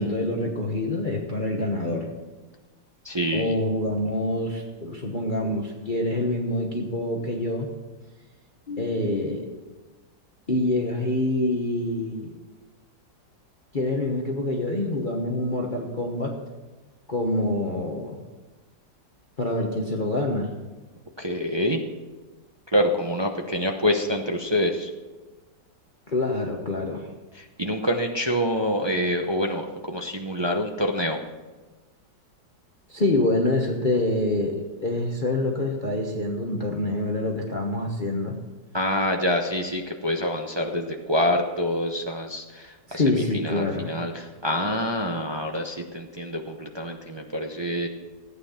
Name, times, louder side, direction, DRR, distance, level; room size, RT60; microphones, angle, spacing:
voice 1, 0.0-2.1 3.3-7.7 8.7-9.5 10.5-12.3 13.7-16.3 17.1-18.2 19.4-20.5 26.1-27.1 32.9-38.3 42.9-43.9, left 1 dB, 30° left, 0 dB, 1.2 m, -26 dB
voice 2, 3.0-3.5 21.2-21.8 22.7-24.9 27.6-31.2 38.7-43.0 43.4-47.9, equal, 30° right, 2 dB, 0.4 m, -26 dB
15.0 x 9.2 x 5.7 m, 1.2 s
omnidirectional pair, 1.9 m